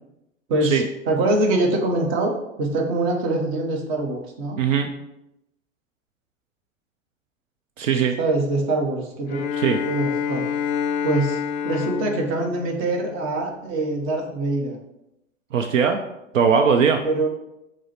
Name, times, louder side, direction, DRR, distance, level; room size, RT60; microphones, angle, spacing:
voice 1, 0.5-4.6 8.2-9.4 9.9-10.5 11.0-14.8 17.0-17.3, right 2 dB, 30° right, 1 dB, 0.9 m, -24 dB
voice 2, 4.6-4.9 7.8-8.2 9.5-9.8 15.5-16.0 16.3-17.0, right 6 dB, 70° right, 5 dB, 0.5 m, -19 dB
Bowed string instrument, 9.3-13.7, left 7 dB, 35° left, 0.4 m, -28 dB
4.7 x 2.0 x 4.2 m, 0.86 s
figure-of-eight pair, 100°, 40 cm